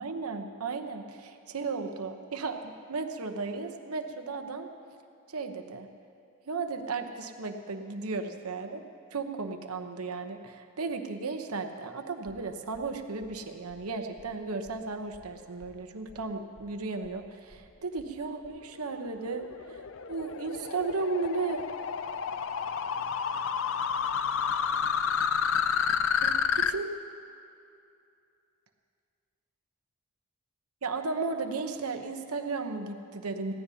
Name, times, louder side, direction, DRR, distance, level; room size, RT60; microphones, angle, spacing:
voice 1, 0.0-4.7 5.3-5.9 6.5-8.8 9.1-21.6 26.2-26.9 30.8-33.5, right 4 dB, 85° right, 6 dB, 0.9 m, -35 dB
sound 1, 12.2-18.5, equal, 15° right, 1.9 m, -57 dB
sound 2, 18.7-26.7, left 7 dB, 60° left, 0.4 m, -30 dB
19.5 x 16.0 x 2.8 m, 2.6 s
head